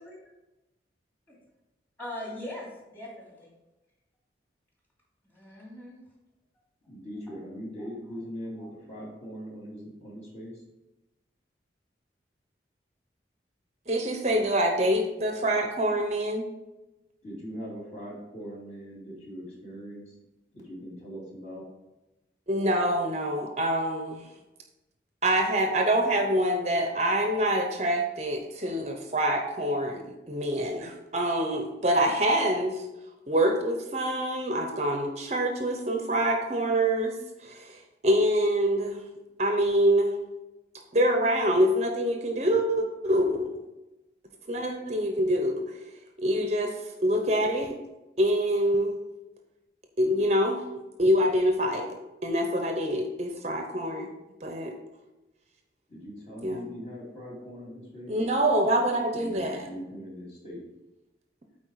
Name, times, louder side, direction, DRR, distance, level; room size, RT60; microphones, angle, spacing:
voice 1, 2.0-3.5 5.3-6.0 7.3-7.4 7.8-7.9 8.1-8.3 8.6-8.7, left 1 dB, 10° left, -5 dB, 2.6 m, -41 dB
voice 2, 6.9-10.6 17.2-20.1 20.5-21.6 55.9-58.1 59.1-60.6, equal, 35° left, -5 dB, 2.7 m, -41 dB
voice 3, 13.9-16.5 22.5-24.3 25.2-32.8 33.3-39.0 39.4-40.2 40.9-43.6 44.5-45.6 46.2-47.7 48.2-49.0 50.0-50.6 51.0-51.9 52.2-54.1 54.4-54.7 56.4-56.6 58.1-59.6, right 1 dB, 35° right, 4 dB, 0.7 m, -25 dB
8.8 x 4.3 x 4.7 m, 1.0 s
head